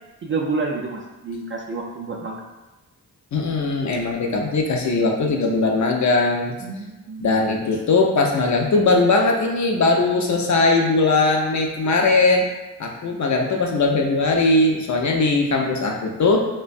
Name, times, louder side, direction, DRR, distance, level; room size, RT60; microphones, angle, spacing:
voice 1, 0.2-2.4 6.6-7.3, right 3 dB, 30° right, 0 dB, 0.4 m, -29 dB
voice 2, 3.3-6.5 7.2-12.4 12.8-16.5, left 3 dB, 45° left, 1 dB, 0.5 m, -19 dB
2.5 x 2.1 x 2.5 m, 1.1 s
supercardioid pair, 40°, 40 cm